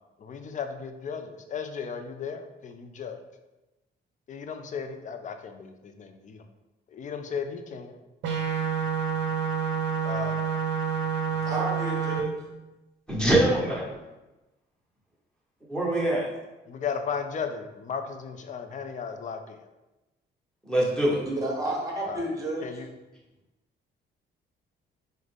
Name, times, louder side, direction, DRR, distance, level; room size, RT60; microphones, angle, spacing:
voice 1, 0.2-3.2 4.3-6.4 6.9-8.0 10.0-10.4 16.7-19.6 22.0-22.3 22.6-22.9, left 6 dB, 40° left, 7 dB, 0.4 m, -35 dB
sound 1, 8.2-12.2, right 7 dB, 70° right, 0.5 m, -28 dB
voice 2, 11.4-12.3 21.2-22.8, right 2 dB, 15° right, -1 dB, 0.9 m, -31 dB
voice 3, 13.1-13.9 15.7-16.3 20.6-21.2, right 1 dB, 5° left, -5 dB, 1.1 m, -23 dB
3.6 x 2.1 x 3.3 m, 1.0 s
cardioid pair, 90°, 20 cm